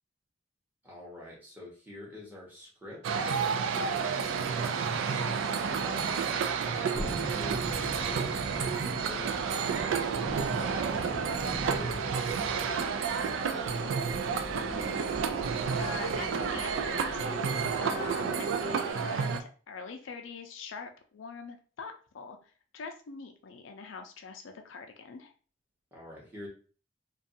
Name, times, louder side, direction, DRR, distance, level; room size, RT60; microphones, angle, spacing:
voice 1, 0.8-3.2 3.7-6.2 6.7-11.2 11.7-13.9 14.4-15.2 25.9-26.5, left 2 dB, 10° right, -5 dB, 0.9 m, -47 dB
sound 1, 3.0-19.4, right 6 dB, 85° right, 0.3 m, -30 dB
Thunderstorm, 6.9-17.2 17.5-17.6, equal, 20° left, 0.5 m, -42 dB
sound 2, 13.6-18.9, right 1 dB, 45° right, 1.0 m, -41 dB
voice 2, 15.8-17.5 17.8-22.4 22.7-25.3, left 4 dB, 90° left, 5 dB, 0.4 m, -43 dB
2.5 x 2.3 x 2.6 m, 0.39 s
head